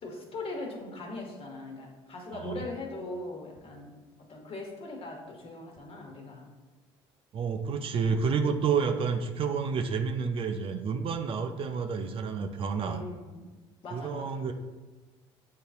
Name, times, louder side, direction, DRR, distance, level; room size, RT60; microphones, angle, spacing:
voice 1, 0.0-3.9 4.2-6.5 8.0-8.2 12.8-13.5 13.8-14.4, left 2 dB, 50° left, 1 dB, 1.1 m, -40 dB
voice 2, 2.3-2.7 7.3-13.0 13.9-14.5, right 5 dB, 45° right, 6 dB, 0.4 m, -30 dB
6.5 x 2.8 x 2.4 m, 1.2 s
hypercardioid pair, 70°, 13 cm